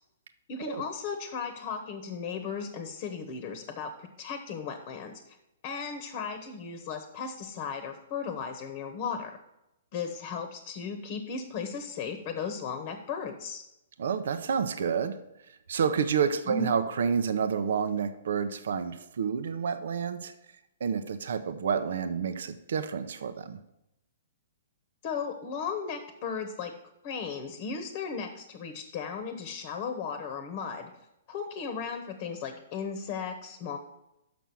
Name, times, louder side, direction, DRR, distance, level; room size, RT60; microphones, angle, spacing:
voice 1, 0.5-5.4 5.6-9.4 9.9-13.6 16.5-16.7 25.0-26.7 27.0-30.9 31.3-33.8, left 5 dB, 40° left, 8 dB, 1.0 m, -36 dB
voice 2, 14.0-15.2 15.5-20.3 20.8-23.6, right 6 dB, 70° right, 11 dB, 0.7 m, -29 dB
6.1 x 6.1 x 7.0 m, 0.88 s
hypercardioid pair, 140°, 0 cm